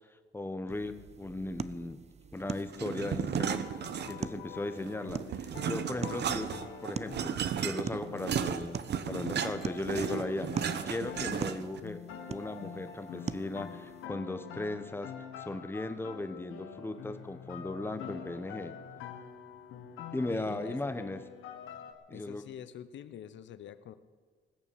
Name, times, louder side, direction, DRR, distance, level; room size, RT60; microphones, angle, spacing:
voice 1, 0.3-2.0 2.3-3.6 4.1-6.5 6.8-12.0 12.3-15.1 15.4-18.7 20.1-21.2 22.1-22.5, left 2 dB, 10° left, 9 dB, 1.3 m, -37 dB
sound 1, 0.7-14.1, right 6 dB, 35° right, 0.6 m, -44 dB
sound 2, 2.7-4.4 4.8-11.8, right 8 dB, 60° right, 1.0 m, -35 dB
sound 3, 3.3-21.9, left 7 dB, 90° left, 1.5 m, -46 dB
voice 2, 20.3-20.8 22.1-23.9, left 9 dB, 70° left, 13 dB, 1.0 m, -46 dB
19.5 x 7.2 x 8.8 m, 1.6 s
cardioid pair, 90°, 20 cm